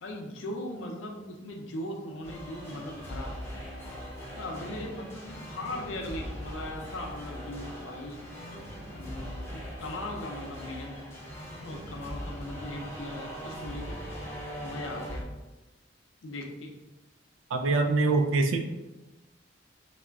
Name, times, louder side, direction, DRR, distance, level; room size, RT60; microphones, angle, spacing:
voice 1, 0.0-3.4 4.4-8.2 8.9-11.0 11.6-14.0 14.6-15.2 16.2-16.8, left 1 dB, 85° left, 1 dB, 0.5 m, -39 dB
sound 1, 2.2-15.2, equal, 15° left, 0.5 m, -40 dB
voice 2, 17.5-18.6, right 3 dB, 90° right, 5 dB, 0.3 m, -24 dB
2.4 x 2.0 x 3.3 m, 1.1 s
head